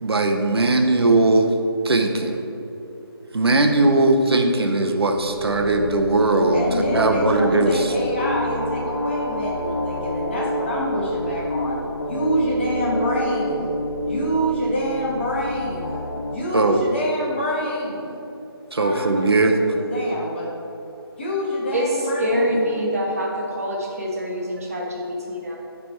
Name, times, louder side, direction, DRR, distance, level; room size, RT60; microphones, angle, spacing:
voice 1, 0.0-1.5 1.8-2.4 3.3-7.9 16.5-16.8 18.7-19.6, right 2 dB, 75° right, 4 dB, 0.7 m, -19 dB
sound 1, 4.8-16.4, left 1 dB, 85° left, 0.8 m, -28 dB
voice 2, 6.5-11.8 12.0-13.7 14.0-16.0 16.3-18.2 18.8-20.5 21.2-22.7, equal, 25° left, -5 dB, 1.1 m, -26 dB
voice 3, 21.7-25.6, equal, 35° right, -2 dB, 1.0 m, -25 dB
9.0 x 3.4 x 4.3 m, 2.9 s
figure-of-eight pair, 165°, 13 cm